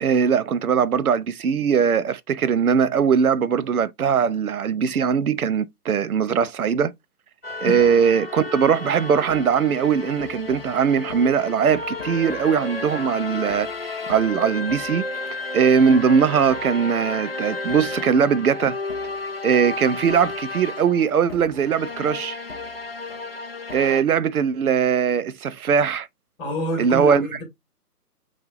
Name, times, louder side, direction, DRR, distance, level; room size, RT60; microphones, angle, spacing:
voice 1, 0.0-6.9 7.6-15.0 15.5-18.8 19.4-22.4 23.7-26.1 26.8-27.3, right 7 dB, 65° right, 0.6 m, -20 dB
sound 1, 7.4-24.0, left 3 dB, 40° left, 0.4 m, -32 dB
voice 2, 26.4-27.4, equal, 20° left, 2.1 m, -27 dB
5.4 x 3.2 x 2.4 m
figure-of-eight pair, 140°, 48 cm